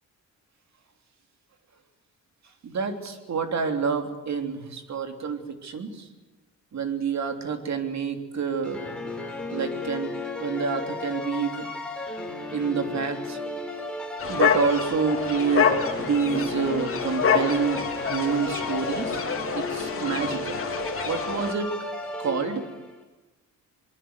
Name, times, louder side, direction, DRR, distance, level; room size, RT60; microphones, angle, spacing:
voice 1, 2.6-6.1 6.7-8.9 9.5-10.1 10.4-11.7 12.5-13.4 14.3-15.7 16.0-19.3 19.5-20.6 21.0-21.7 22.2-22.6, right 6 dB, 55° right, 6 dB, 3.2 m, -28 dB
sound 1, 8.6-22.9, left 2 dB, 5° left, 5.6 m, -34 dB
sound 2, 14.2-21.5, left 6 dB, 40° left, 3.2 m, -27 dB
23.0 x 23.0 x 8.1 m, 1.1 s
cardioid pair, 100°, 33 cm